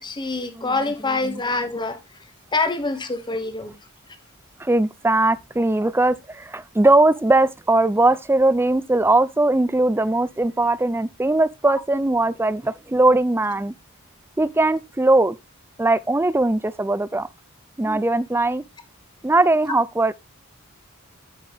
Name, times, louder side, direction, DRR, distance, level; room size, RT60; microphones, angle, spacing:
voice 1, 0.0-2.0 2.5-3.7, left 3 dB, 20° left, 1.2 m, -25 dB
voice 2, 4.6-13.7 14.4-15.4 15.8-17.3 17.8-18.6 19.2-20.1, right 2 dB, 10° right, 0.4 m, -20 dB
8.8 x 6.2 x 3.4 m
head